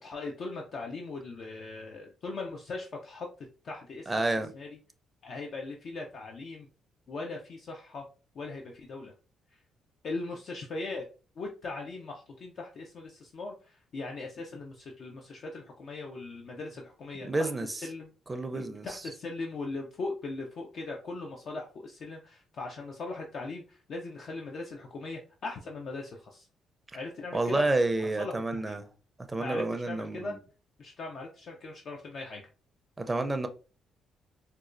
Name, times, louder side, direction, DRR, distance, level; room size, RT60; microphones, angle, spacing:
voice 1, 0.0-4.2 4.5-4.7 5.2-6.7 7.1-8.0 8.3-9.1 9.5-9.6 10.0-11.1 11.4-17.5 17.8-26.5 26.9-27.6 28.0-28.8 29.4-30.4 30.8-32.4, left 3 dB, 60° left, 0.5 m, -39 dB
voice 2, 4.1-4.5 17.2-17.7 18.3-19.0 27.3-28.8 29.3-30.4 33.0-33.5, right 2 dB, 20° right, 0.5 m, -29 dB
4.1 x 2.2 x 2.5 m
cardioid pair, 90°, 0 cm